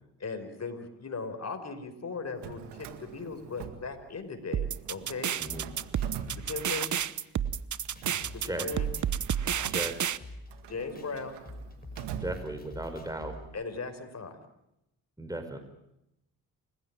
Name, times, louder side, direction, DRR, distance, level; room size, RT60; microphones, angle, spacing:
voice 1, 0.2-5.3 6.5-7.0 8.3-8.9 10.7-11.4 13.5-14.4, left 4 dB, 40° left, 7 dB, 5.2 m, -38 dB
Drawer open or close, 2.2-4.4 4.7-7.1 7.7-13.0, right 9 dB, 85° right, 1.9 m, -45 dB
sound 1, 4.5-10.2, right 9 dB, 45° right, 1.0 m, -30 dB
voice 2, 5.4-5.7 8.4-8.7 9.7-10.0 12.1-13.3 15.2-15.6, right 1 dB, 10° right, 8 dB, 4.8 m, -36 dB
sound 2, 5.5-13.4, left 1 dB, 20° left, 5.8 m, -47 dB
28.5 x 16.0 x 9.1 m, 0.87 s
supercardioid pair, 60°, 40 cm